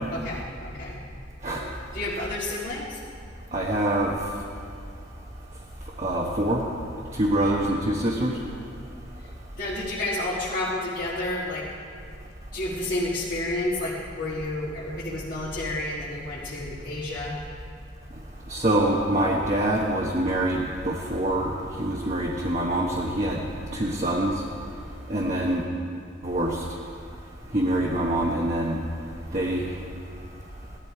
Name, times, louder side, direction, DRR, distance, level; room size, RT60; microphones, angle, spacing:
voice 1, 0.1-1.0 1.9-3.0 7.4-7.5 9.6-11.6 12.5-17.3 27.8-27.9, left 1 dB, 50° left, -8 dB, 1.7 m, -30 dB
voice 2, 3.5-4.2 6.0-6.6 7.1-8.4 18.5-24.4 25.1-25.6 26.2-26.6 27.5-28.8 29.3-29.7, right 1 dB, 40° right, -3 dB, 1.2 m, -25 dB
17.0 x 12.0 x 4.7 m, 2.3 s
head